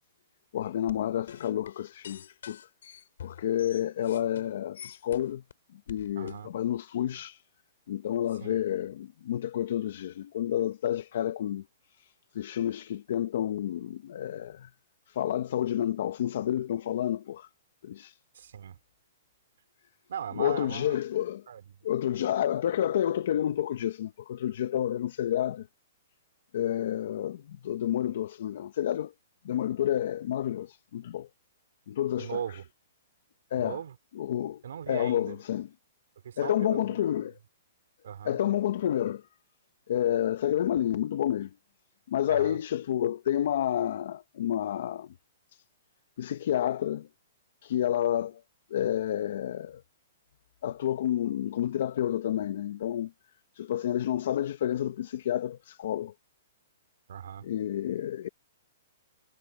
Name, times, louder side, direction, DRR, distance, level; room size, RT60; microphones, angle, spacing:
voice 1, 0.5-2.6 3.2-5.4 5.9-7.4 7.9-11.6 12.0-14.7 15.1-17.5 17.8-18.2 20.3-21.4 21.8-25.7 26.5-29.1 29.4-31.3 31.9-32.4 33.5-33.8 34.2-34.6 34.9-35.7 36.4-37.3 38.2-39.2 39.9-41.5 42.1-45.1 45.5-45.6 46.2-47.1 47.6-48.4 48.7-49.8 50.6-53.1 53.5-56.1 57.4-58.3, left 11 dB, 50° left, 0.8 m, -29 dB
sound 1, 0.9-5.5 5.9-6.4, left 9 dB, 70° left, 3.5 m, -46 dB
voice 2, 6.1-6.5 8.4-8.6 18.3-18.8 20.1-21.0 21.5-21.8 32.2-32.7 33.5-33.9 34.6-35.4 36.2-37.0 38.0-38.4 42.3-42.6 57.1-57.4, right 9 dB, 70° right, 3.2 m, -38 dB
hypercardioid pair, 170°, 0 cm